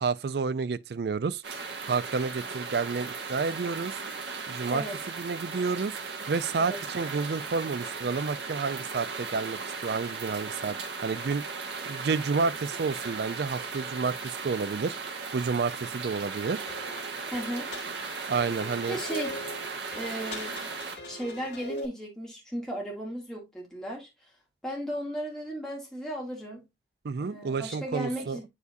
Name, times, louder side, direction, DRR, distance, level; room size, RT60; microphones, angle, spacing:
voice 1, 0.0-1.4 1.9-4.0 4.5-4.8 5.2-6.0 6.3-10.8 11.0-11.4 11.9-15.0 15.3-16.7 18.3-19.0 27.0-28.4, right 4 dB, 65° right, 0.4 m, -30 dB
sound 1, 1.4-21.0, right 4 dB, 85° right, 1.4 m, -37 dB
sound 2, 16.7-21.9, left 1 dB, 85° left, 1.6 m, -41 dB
voice 2, 17.3-17.7 18.9-19.3 19.9-20.6 21.0-24.1 24.6-26.6 27.2-28.4, equal, 5° left, 2.3 m, -35 dB
8.1 x 4.8 x 2.6 m
head